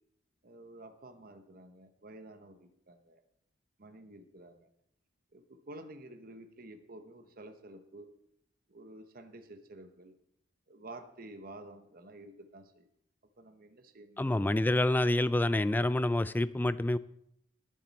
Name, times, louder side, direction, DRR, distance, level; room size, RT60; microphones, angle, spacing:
voice 1, 0.4-3.2 3.8-4.7 5.3-8.1 8.7-10.2 10.7-12.9 13.4-14.3 14.6-14.7, right 1 dB, 50° right, 1.0 m, -50 dB
voice 2, 14.2-17.0, left 1 dB, 10° left, 0.3 m, -27 dB
19.0 x 7.5 x 4.2 m
head